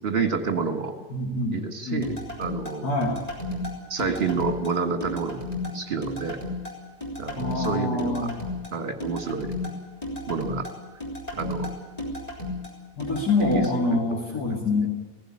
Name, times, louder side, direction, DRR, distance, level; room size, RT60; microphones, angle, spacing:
voice 1, 0.0-0.9 1.5-2.1 2.4-2.9 3.9-5.5 5.7-6.4 7.2-8.3 8.7-9.5 10.3-10.7 11.3-11.7 13.4-13.6 13.9-14.2, right 5 dB, 35° right, 6 dB, 2.0 m, -28 dB
voice 2, 1.1-2.1 2.8-3.2 7.3-8.4 13.0-14.9, left 2 dB, 65° left, -1 dB, 2.9 m, -26 dB
sound 1, 2.0-13.7, left 2 dB, 20° left, 4.2 m, -33 dB
17.5 x 15.5 x 9.8 m, 1.4 s
omnidirectional pair, 1.8 m